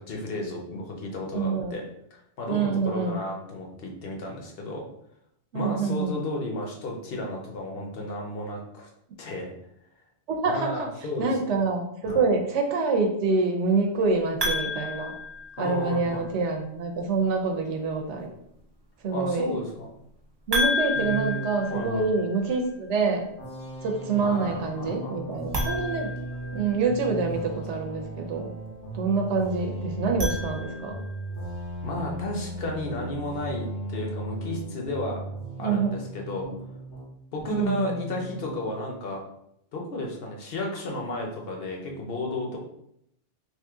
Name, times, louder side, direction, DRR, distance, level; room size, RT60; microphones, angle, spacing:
voice 1, 0.0-1.8 2.1-4.9 5.5-8.9 9.2-9.5 10.5-11.6 12.0-12.2 15.6-16.3 19.1-19.9 20.9-22.1 24.1-25.4 31.8-35.2 35.6-36.5 37.3-39.2 39.7-42.6, left 1 dB, 60° left, 0 dB, 0.9 m, -33 dB
voice 2, 1.3-1.7 2.5-3.2 5.5-6.1 10.3-10.9 11.2-15.1 15.6-18.4 19.0-19.5 20.5-23.3 23.8-26.1 26.5-28.5 28.9-31.0 35.6-36.0 37.5-38.0, right 4 dB, 85° right, 2 dB, 0.9 m, -26 dB
sound 1, 14.4-16.1 20.5-22.5 25.4-27.0 29.9-31.2, left 2 dB, 25° right, 0.6 m, -31 dB
sound 2, 23.4-37.1 37.4-38.6, right 1 dB, 90° left, 1.2 m, -37 dB
3.0 x 2.6 x 3.5 m, 0.74 s
omnidirectional pair, 1.1 m